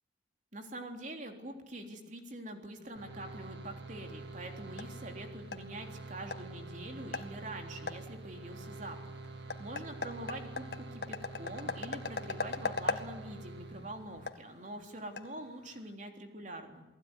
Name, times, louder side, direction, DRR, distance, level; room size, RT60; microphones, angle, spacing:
voice 1, 0.5-9.0 9.3-16.8, right 1 dB, 45° right, 4 dB, 3.7 m, -45 dB
sound 1, 3.0-14.3, right 3 dB, 75° right, 2.2 m, -46 dB
sound 2, 4.1-15.9, left 4 dB, 65° left, 1.9 m, -42 dB
29.0 x 19.5 x 10.0 m, 0.96 s
head